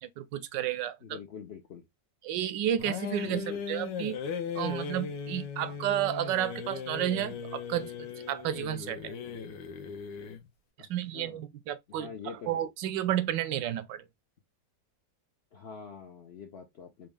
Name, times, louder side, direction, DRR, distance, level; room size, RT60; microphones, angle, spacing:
voice 1, 0.0-1.2 2.2-4.2 4.5-9.1 10.9-14.0, right 11 dB, 90° right, 1.3 m, -32 dB
voice 2, 1.0-1.9 3.2-3.6 10.8-11.4 11.9-12.7 15.5-17.1, left 6 dB, 65° left, 0.6 m, -45 dB
sound 1, 2.8-10.5, left 6 dB, 85° left, 1.3 m, -38 dB
4.1 x 2.4 x 3.3 m
omnidirectional pair, 1.9 m